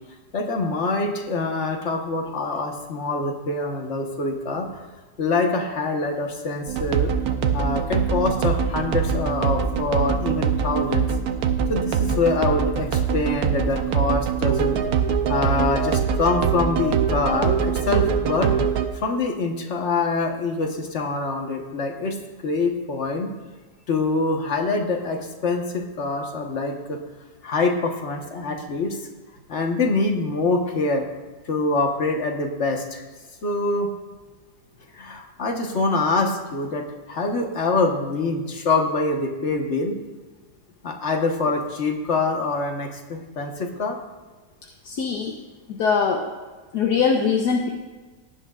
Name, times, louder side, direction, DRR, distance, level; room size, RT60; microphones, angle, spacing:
voice 1, 0.3-4.8 5.2-7.1 7.5-11.1 11.7-14.8 15.3-18.5 18.9-22.2 22.4-23.3 23.9-27.0 27.4-29.0 29.5-31.0 31.4-33.0 33.4-33.9 34.9-40.0 40.8-44.0, left 3 dB, 45° left, 3 dB, 1.4 m, -25 dB
sound 1, 6.7-18.9, right 7 dB, 65° right, 1.1 m, -23 dB
voice 2, 44.8-45.4 45.7-46.3 46.7-47.7, left 5 dB, 70° left, 2 dB, 1.4 m, -22 dB
17.0 x 10.5 x 2.4 m, 1.3 s
omnidirectional pair, 1.8 m